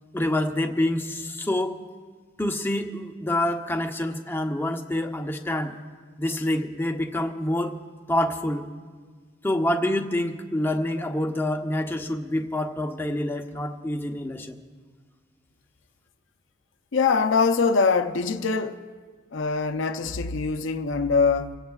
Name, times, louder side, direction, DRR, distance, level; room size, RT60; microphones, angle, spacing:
voice 1, 0.1-1.8 2.4-5.8 6.2-7.8 8.1-8.7 9.4-14.6, left 1 dB, 10° left, 0.7 m, -27 dB
voice 2, 16.9-18.9 19.3-21.6, left 4 dB, 70° left, 0.6 m, -23 dB
27.0 x 16.5 x 2.4 m
head